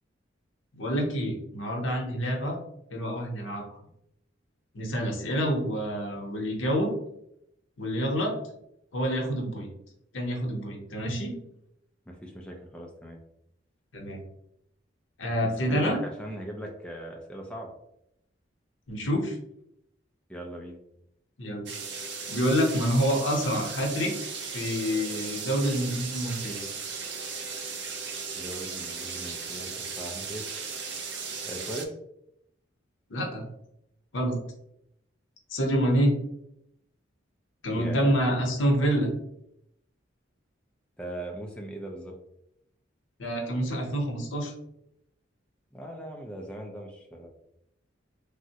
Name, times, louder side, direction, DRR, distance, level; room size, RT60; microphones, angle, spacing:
voice 1, 0.7-2.6 2.9-3.8 4.7-6.9 7.8-8.3 8.9-9.7 10.1-11.4 13.9-14.2 15.2-16.0 18.9-19.4 21.4-21.7 22.3-26.7 33.1-33.5 34.1-34.3 35.5-36.2 37.6-39.1 43.2-44.5, equal, 75° left, 1 dB, 0.8 m, -27 dB
voice 2, 12.1-13.2 15.4-17.7 20.3-20.8 28.3-30.4 31.4-31.9 37.7-38.1 41.0-42.1 45.7-47.3, right 1 dB, 5° left, 0 dB, 0.3 m, -39 dB
sound 1, 21.7-31.9, right 5 dB, 60° right, 0.5 m, -36 dB
3.5 x 2.0 x 2.7 m, 0.78 s
head